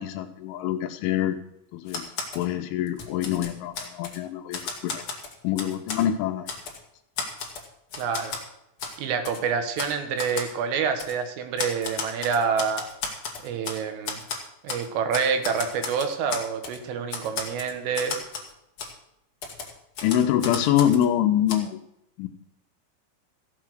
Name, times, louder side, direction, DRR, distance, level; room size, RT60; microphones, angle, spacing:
voice 1, 0.0-1.4 1.7-2.1 2.4-5.0 5.4-6.5 20.0-21.8 22.2-22.3, left 11 dB, 80° left, 7 dB, 3.2 m, -25 dB
Typewriter, 1.9-2.4 2.9-4.2 4.5-6.0 6.5-6.8 7.2-8.4 8.8-9.0 9.2-9.4 9.8-9.9 10.2-10.5 11.0-11.1 11.6-13.8 14.0-14.8 15.1-16.8 17.1-18.5 18.8-18.9 19.4-21.1 21.5-21.6, left 4 dB, 60° left, 1.4 m, -34 dB
voice 2, 8.0-8.4 9.0-12.8 13.4-14.2 14.6-18.2, right 6 dB, 75° right, 7 dB, 4.0 m, -27 dB
15.0 x 8.4 x 6.4 m, 0.81 s
omnidirectional pair, 5.9 m